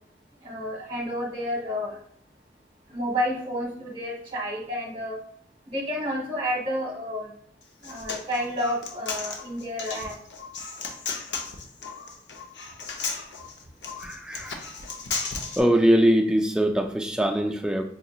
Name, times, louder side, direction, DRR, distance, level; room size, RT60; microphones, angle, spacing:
voice 1, 0.4-2.0 2.9-5.2 5.7-7.3 7.8-10.1, equal, 30° right, -2 dB, 1.0 m, -30 dB
Human voice, 7.6-15.6, left 4 dB, 70° left, 0.6 m, -35 dB
voice 2, 14.0-14.6 15.6-17.8, equal, 5° right, 3 dB, 0.3 m, -22 dB
5.1 x 2.8 x 2.4 m, 0.65 s
head